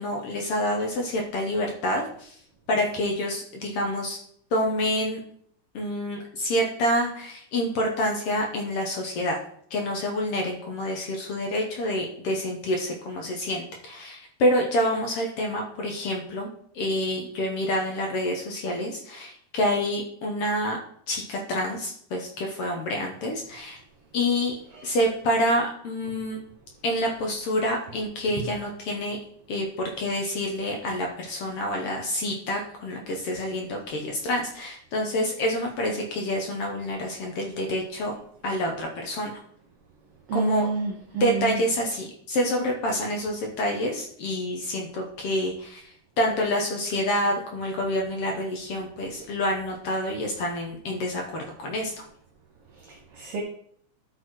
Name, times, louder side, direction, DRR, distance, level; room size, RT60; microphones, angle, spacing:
voice 1, 0.0-2.4 2.7-4.2 4.5-5.2 5.7-9.4 9.7-16.5 16.7-20.8 21.1-23.8 24.1-24.5 24.8-26.4 26.8-29.2 29.5-38.1 38.4-39.3 40.3-40.7 41.2-51.9, left 1 dB, 65° left, 1 dB, 1.6 m, -27 dB
voice 2, 40.3-41.6 53.2-53.4, right 4 dB, 60° right, 0 dB, 1.6 m, -28 dB
12.0 x 4.2 x 4.7 m, 0.65 s
omnidirectional pair, 3.7 m